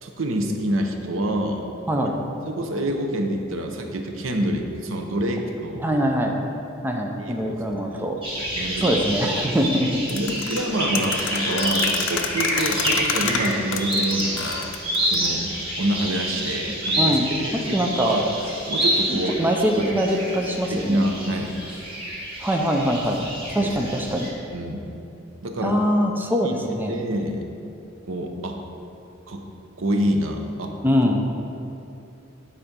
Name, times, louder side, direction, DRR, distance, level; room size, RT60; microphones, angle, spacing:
voice 1, 0.0-1.7 2.5-5.8 7.2-8.1 8.4-9.3 10.1-14.6 15.0-17.2 17.4-18.2 18.7-19.4 19.8-19.9 20.7-21.5 23.6-23.7 24.5-24.9 25.4-25.8 26.4-26.5 26.9-27.5 28.1-28.6 29.3-29.4 29.8-30.7, right 1 dB, 85° right, 4 dB, 0.8 m, -27 dB
voice 2, 1.9-2.2 5.8-6.5 6.8-8.2 8.8-10.0 17.0-17.3 17.5-18.2 19.1-21.0 22.4-23.2 23.5-24.3 25.6-27.0 30.8-31.3, equal, 10° right, 1 dB, 0.5 m, -23 dB
sound 1, 8.2-24.3, right 1 dB, 30° right, 1.6 m, -28 dB
sound 2, 10.1-15.3, left 6 dB, 70° left, 0.6 m, -29 dB
9.7 x 4.3 x 5.2 m, 2.8 s
head